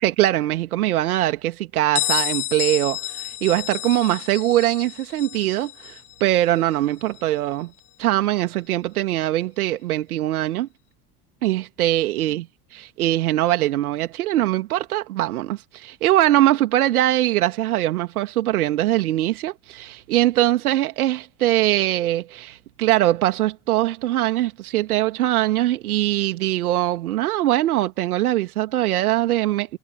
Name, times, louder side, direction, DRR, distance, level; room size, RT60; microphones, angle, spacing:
voice 1, 0.0-7.7 8.0-10.7 11.4-12.4 12.7-29.8, right 14 dB, 70° right, 2.4 m, -22 dB
Bell, 1.9-7.5, left 16 dB, 50° left, 7.8 m, -30 dB
figure-of-eight pair, 65°, 46 cm